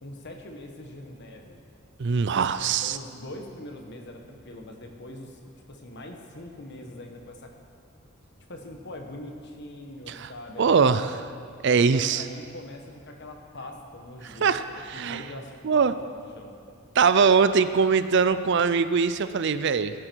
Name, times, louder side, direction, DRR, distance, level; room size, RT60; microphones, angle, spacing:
voice 1, 0.0-1.6 2.8-5.4 5.7-7.5 8.5-11.1 11.9-16.6, left 1 dB, 55° left, 3 dB, 1.3 m, -42 dB
voice 2, 2.0-3.0 10.1-10.3 10.6-11.1 11.6-12.3 14.4-14.6 14.9-15.2 15.6-15.9 17.0-19.9, right 5 dB, 55° right, 12 dB, 0.5 m, -22 dB
16.5 x 9.9 x 4.6 m, 2.2 s
head